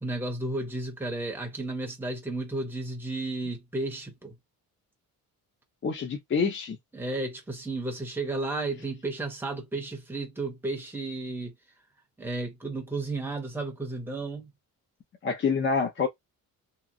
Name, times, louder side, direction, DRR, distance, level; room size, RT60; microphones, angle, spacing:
voice 1, 0.0-4.3 6.9-11.5 12.2-14.5, right 2 dB, 5° right, 0.7 m, -33 dB
voice 2, 5.8-6.8 15.2-16.1, left 5 dB, 35° left, 0.5 m, -27 dB
2.9 x 2.4 x 2.6 m
cardioid pair, 170°, 36 cm